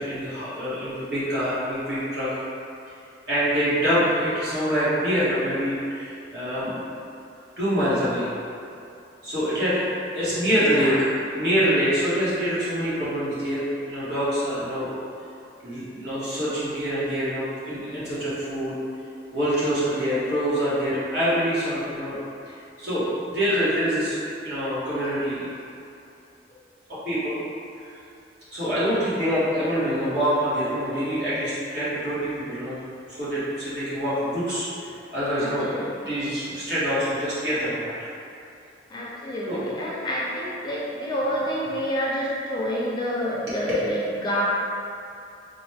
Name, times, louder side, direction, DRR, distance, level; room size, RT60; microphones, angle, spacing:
voice 1, 0.0-2.3 3.3-7.0 7.6-8.3 9.2-10.9 11.3-14.9 15.6-18.7 19.3-22.2 22.4-23.0 23.3-25.5 26.9-27.4 27.8-27.9 28.5-34.7 35.1-35.7 36.0-38.0 39.5-39.6 43.5-43.6, equal, 60° right, -12 dB, 1.4 m, -25 dB
voice 2, 10.6-11.0 35.4-36.1 38.9-44.4, equal, 25° left, -5 dB, 0.4 m, -28 dB
3.9 x 2.2 x 3.3 m, 2.6 s
head